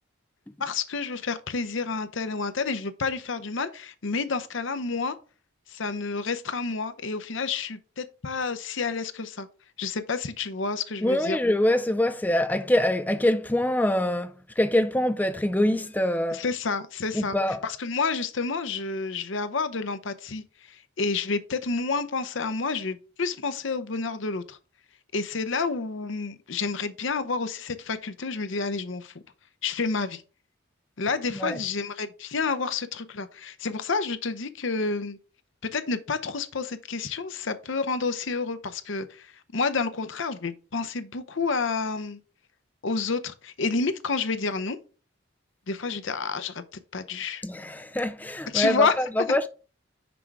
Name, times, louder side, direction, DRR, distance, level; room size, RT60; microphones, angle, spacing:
voice 1, 0.6-5.2 5.7-9.5 9.8-11.4 16.3-24.6 25.1-29.1 29.6-30.2 31.0-35.2 35.6-42.2 42.8-44.8 45.7-47.4 48.5-49.0, left 4 dB, 65° left, 0.7 m, -29 dB
voice 2, 11.0-16.4 17.1-17.6 31.3-31.6 47.4-49.5, left 1 dB, 10° left, 0.3 m, -24 dB
6.1 x 4.6 x 4.7 m
head